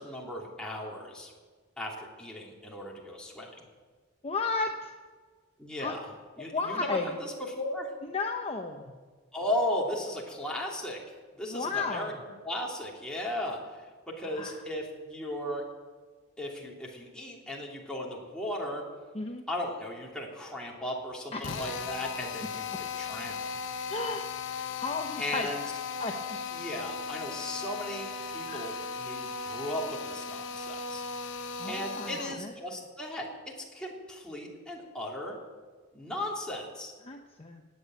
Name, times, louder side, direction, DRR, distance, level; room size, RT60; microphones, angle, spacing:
voice 1, 0.0-1.3 1.8-3.6 5.6-6.1 6.4-7.9 9.3-11.0 11.4-12.1 12.4-15.6 16.4-18.8 19.5-23.5 25.2-25.6 26.5-31.0 31.7-35.4 35.9-36.9, left 1 dB, 5° left, -3 dB, 3.1 m, -36 dB
voice 2, 4.2-4.9 5.8-6.0 6.4-7.2 8.0-9.0 11.5-12.2 14.2-14.6 19.1-19.4 21.3-21.6 23.9-24.3 24.8-25.5 26.0-26.5 28.5-29.0 31.6-32.8 37.0-37.6, left 3 dB, 30° left, 4 dB, 0.8 m, -34 dB
Drill, 21.4-32.4, left 5 dB, 65° left, 0.9 m, -37 dB
17.0 x 9.0 x 8.8 m, 1.5 s
head